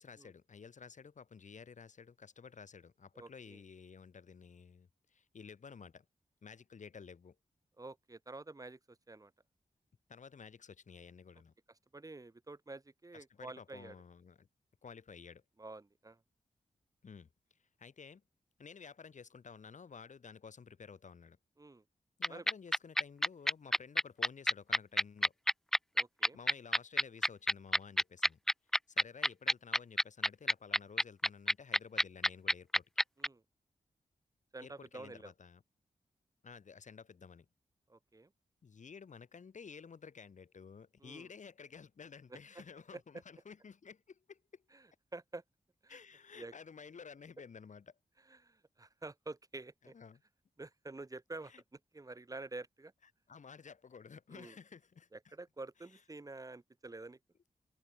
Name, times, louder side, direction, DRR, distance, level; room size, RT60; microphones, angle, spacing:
voice 1, 0.0-6.1 6.4-7.4 10.1-11.5 13.3-14.5 14.8-15.4 17.0-17.3 17.8-18.2 18.6-21.4 22.2-25.3 26.3-28.4 28.9-32.9 34.6-35.6 36.4-37.5 38.6-44.6 45.9-48.0 49.8-50.2 51.4-51.6 53.3-55.1, left 6 dB, 65° left, 3.7 m, -53 dB
voice 2, 3.1-3.6 7.8-9.3 11.9-13.9 15.6-16.2 21.6-21.8 22.3-22.5 25.9-26.4 33.2-33.4 34.5-35.3 37.9-38.3 41.0-41.3 42.3-42.4 42.9-43.0 44.7-44.9 45.1-45.4 45.8-46.0 46.3-46.5 48.3-49.9 50.6-51.5 51.9-52.9 54.3-54.5 55.1-57.2, right 2 dB, 25° right, 2.5 m, -48 dB
sound 1, 22.2-33.3, equal, 5° left, 0.4 m, -28 dB
wide cardioid pair, 100°, 14 cm